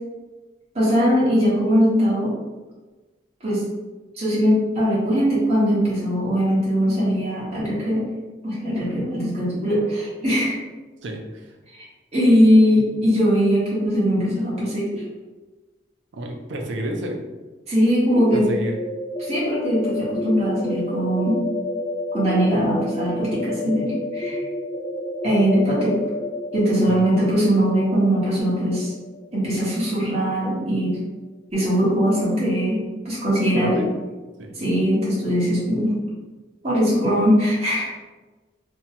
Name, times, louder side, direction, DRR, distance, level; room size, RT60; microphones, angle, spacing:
voice 1, 0.7-2.3 3.4-3.6 4.2-8.0 8.4-10.6 12.1-15.0 17.7-18.4 19.2-21.4 22.1-24.4 25.2-25.9 26.5-28.9 29.3-31.0 31.5-32.8 33.0-33.8 34.6-35.9 36.6-37.9, equal, 35° right, -8 dB, 1.1 m, -20 dB
voice 2, 11.0-11.5 16.1-17.2 18.3-18.8 24.3-24.4 26.9-27.0 33.5-33.9 34.4-34.5, equal, 75° right, 2 dB, 0.4 m, -30 dB
sound 1, 18.2-29.9, left 1 dB, 10° left, 0.3 m, -30 dB
2.7 x 2.2 x 2.7 m, 1.2 s
head